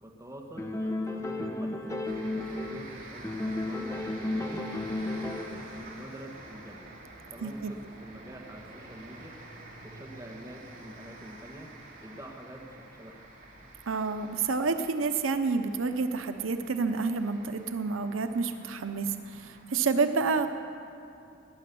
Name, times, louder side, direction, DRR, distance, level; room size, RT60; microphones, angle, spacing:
voice 1, 0.0-2.0 2.3-4.6 4.9-6.9 7.3-9.3 9.8-11.7 12.0-13.2, equal, 15° right, 0 dB, 1.6 m, -46 dB
sound 1, 0.6-2.9 3.2-5.7, left 2 dB, 15° left, 1.0 m, -33 dB
sound 2, 2.1-19.7, right 2 dB, 45° right, 2.7 m, -48 dB
voice 2, 7.4-7.7 13.9-20.5, right 4 dB, 85° right, 8 dB, 0.8 m, -29 dB
18.0 x 10.5 x 6.9 m, 2.7 s
head